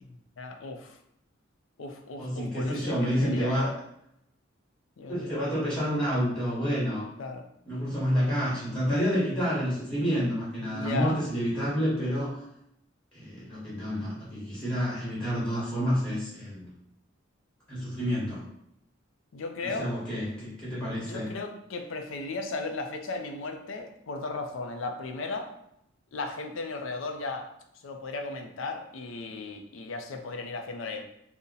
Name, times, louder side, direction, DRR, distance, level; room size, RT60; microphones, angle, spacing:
voice 1, 0.0-1.0 1.8-3.8 5.0-5.3 7.2-7.5 10.7-11.2 19.3-19.9 20.9-25.5 26.1-27.5 27.8-31.0, left 3 dB, 75° left, 5 dB, 0.4 m, -36 dB
voice 2, 2.2-3.7 5.1-7.0 7.7-12.4 13.1-16.7 17.7-18.4 19.8-21.3, equal, 5° left, -8 dB, 1.1 m, -29 dB
2.7 x 2.1 x 3.7 m, 0.78 s
head